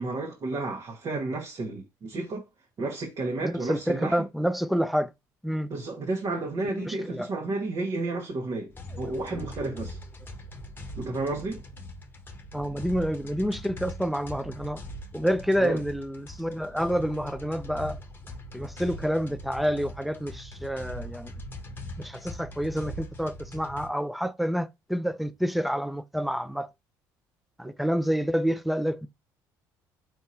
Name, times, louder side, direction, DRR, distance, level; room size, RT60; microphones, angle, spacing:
voice 1, 0.0-2.4 2.8-4.2 5.7-8.7 9.0-10.0 11.0-11.6 15.6-15.8, right 2 dB, 50° right, 1.4 m, -31 dB
voice 2, 3.4-5.1 5.4-5.7 6.7-7.3 12.5-14.8 15.1-18.0 18.5-21.3 22.0-26.7 27.6-29.1, equal, ahead, 0.5 m, -28 dB
sound 1, 8.7-23.9, left 1 dB, 25° left, 1.0 m, -41 dB
4.6 x 3.6 x 2.7 m
supercardioid pair, 80°, 8 cm